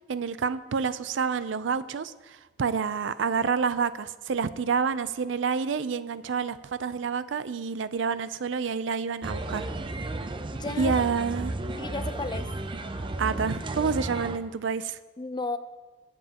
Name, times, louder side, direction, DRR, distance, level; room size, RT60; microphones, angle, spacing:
voice 1, 0.1-9.7 10.8-11.5 13.2-15.0, right 5 dB, 75° right, 15 dB, 0.5 m, -28 dB
sound 1, 9.2-14.4, right 2 dB, 25° right, 0.6 m, -33 dB
voice 2, 10.5-11.0 11.8-12.5 15.2-15.6, left 3 dB, 25° left, 10 dB, 0.5 m, -33 dB
22.0 x 7.8 x 2.9 m, 1.3 s
head